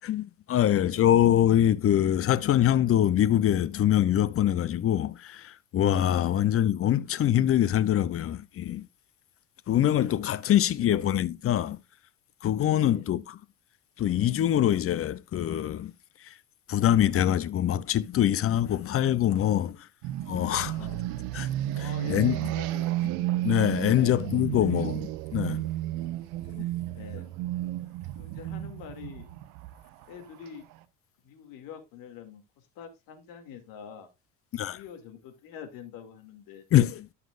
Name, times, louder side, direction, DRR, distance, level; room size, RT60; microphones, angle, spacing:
voice 1, 0.0-8.9 9.7-11.8 12.4-13.4 14.0-15.9 16.2-16.3 16.7-19.9 20.3-20.8 21.3-21.5 21.8-22.3 23.4-24.9 25.3-25.7 34.5-34.8 36.7-37.1, left 11 dB, 40° left, 0.7 m, -24 dB
voice 2, 6.2-6.5 10.7-11.1 12.7-13.0 20.6-21.1 21.7-23.0 23.9-24.2 24.6-24.9 25.5-25.6 26.9-27.2 28.2-29.3 30.1-30.7 31.2-34.1 34.5-36.6, left 8 dB, 65° left, 2.6 m, -45 dB
sound 1, 20.0-30.8, right 14 dB, 75° right, 1.0 m, -32 dB
13.0 x 5.9 x 2.5 m
supercardioid pair, 100°, 36 cm